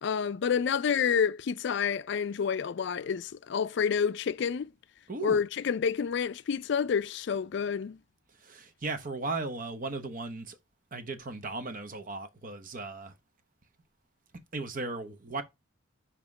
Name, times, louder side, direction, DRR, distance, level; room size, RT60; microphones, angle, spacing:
voice 1, 0.0-4.7 5.2-8.0, left 7 dB, 60° left, 0.4 m, -29 dB
voice 2, 5.1-5.4 8.4-10.6 10.9-13.1 14.5-15.4, right 3 dB, 40° right, 0.9 m, -36 dB
7.3 x 2.9 x 4.7 m
head